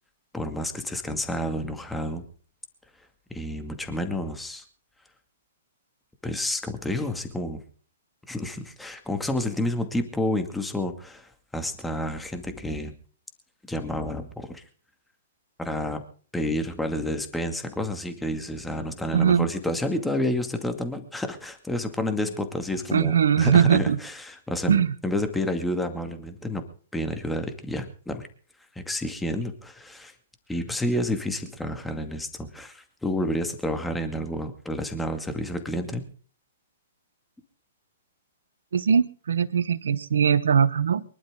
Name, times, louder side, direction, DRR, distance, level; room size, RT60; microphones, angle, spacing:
voice 1, 0.3-2.2 3.3-4.6 6.2-7.6 8.3-12.9 13.7-14.6 15.6-16.0 16.3-26.7 26.9-28.3 28.7-30.1 30.5-36.0, left 1 dB, 5° left, 6 dB, 2.2 m, -30 dB
voice 2, 19.1-19.5 22.9-24.0 24.7-24.9 38.7-41.0, right 7 dB, 70° right, 16 dB, 1.1 m, -21 dB
24.0 x 12.0 x 3.8 m, 0.42 s
hypercardioid pair, 120°, 0 cm